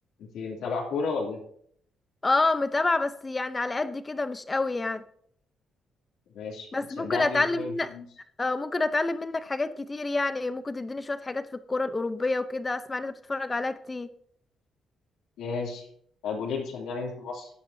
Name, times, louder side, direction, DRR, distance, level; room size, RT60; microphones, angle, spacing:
voice 1, 0.2-1.4 6.3-6.7 7.0-8.1 15.4-15.8 16.2-17.5, left 4 dB, 85° left, -3 dB, 2.8 m, -32 dB
voice 2, 2.2-5.0 6.7-7.9 8.4-14.1, left 3 dB, 25° left, 13 dB, 0.7 m, -28 dB
16.0 x 9.7 x 2.8 m, 0.63 s
cardioid pair, 90°, 0 cm